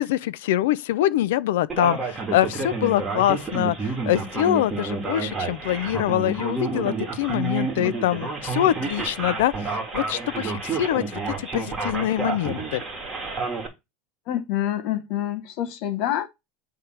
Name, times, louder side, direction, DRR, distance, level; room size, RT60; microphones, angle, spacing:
voice 1, 0.0-12.8, left 13 dB, 80° left, 0.5 m, -24 dB
Male speech man speaking, 1.7-13.7, right 3 dB, 15° right, 1.7 m, -30 dB
voice 2, 14.3-16.3, left 12 dB, 45° left, 1.0 m, -27 dB
8.4 x 3.3 x 5.8 m
supercardioid pair, 170°, 0 cm